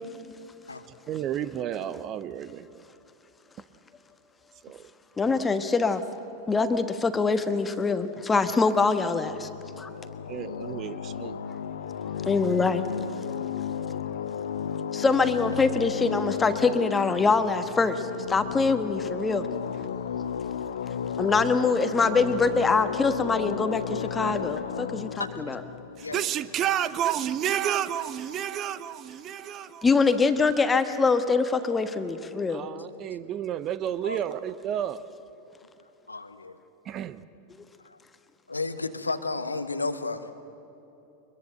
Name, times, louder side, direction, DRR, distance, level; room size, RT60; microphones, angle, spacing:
voice 1, 1.1-2.8 4.6-4.9 5.3-5.5 10.3-11.4 26.0-29.8 32.5-35.0 36.8-37.2, right 10 dB, 30° right, 16 dB, 0.7 m, -31 dB
voice 2, 5.2-6.0 6.5-9.5 9.8-9.9 12.2-12.9 14.9-19.5 21.2-25.6 29.8-32.7, left 4 dB, 15° left, 9 dB, 1.3 m, -24 dB
sound 1, 8.8-27.0, left 8 dB, 65° left, 0.8 m, -34 dB
voice 3, 24.0-24.4 25.2-25.6 26.0-26.3 32.9-33.0 34.0-34.2 36.1-36.6 37.8-38.0 38.5-40.3, left 3 dB, 80° left, 10 dB, 1.1 m, -33 dB
23.5 x 21.5 x 7.9 m, 3.0 s
figure-of-eight pair, 90°, 0 cm